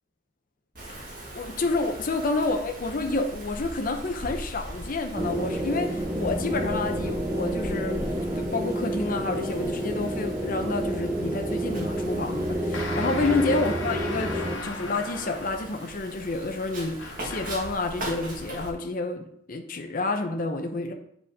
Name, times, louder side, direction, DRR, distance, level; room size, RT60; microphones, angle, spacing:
Wind, 0.7-18.7, right 1 dB, 45° right, 1.7 m, -40 dB
voice 1, 1.3-20.9, left 3 dB, 45° left, 4 dB, 0.7 m, -29 dB
sound 1, 5.1-14.6, equal, 15° right, 0.5 m, -29 dB
sound 2, 12.7-15.8 17.0-17.8, left 2 dB, 90° left, 1.2 m, -36 dB
8.2 x 5.1 x 3.5 m, 0.71 s
head